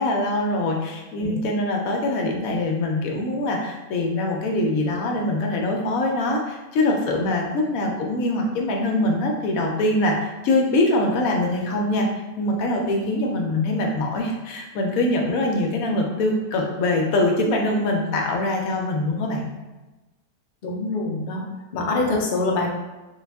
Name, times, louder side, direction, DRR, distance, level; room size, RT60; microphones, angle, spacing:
voice 1, 0.0-12.1 12.4-19.5, left 2 dB, 75° left, 1 dB, 1.0 m, -23 dB
voice 2, 20.6-21.4 21.7-22.7, left 2 dB, 55° left, -2 dB, 0.5 m, -24 dB
3.3 x 2.3 x 3.3 m, 1.1 s
omnidirectional pair, 1.6 m